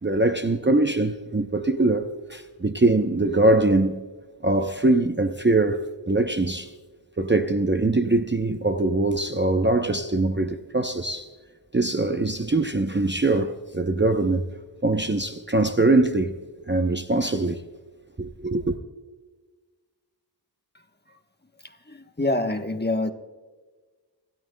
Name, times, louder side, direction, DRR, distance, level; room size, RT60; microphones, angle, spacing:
voice 1, 0.0-4.0 4.4-6.7 7.2-11.3 11.7-14.4 14.8-16.3 16.7-17.6 18.2-18.8, right 2 dB, 25° right, 0.6 m, -22 dB
voice 2, 21.6-23.1, left 2 dB, 25° left, 1.0 m, -27 dB
30.0 x 13.0 x 2.2 m
wide cardioid pair, 50°, 44 cm